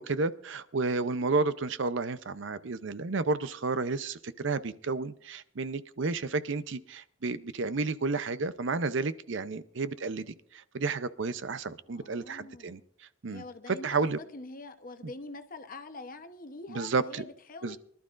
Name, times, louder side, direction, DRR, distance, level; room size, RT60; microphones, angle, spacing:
voice 1, 0.0-12.8 13.2-14.2 16.7-17.2 17.6-17.8, right 3 dB, 65° right, 0.6 m, -31 dB
voice 2, 11.9-12.9 13.3-17.8, left 2 dB, 45° left, 0.9 m, -45 dB
24.0 x 12.0 x 2.5 m
head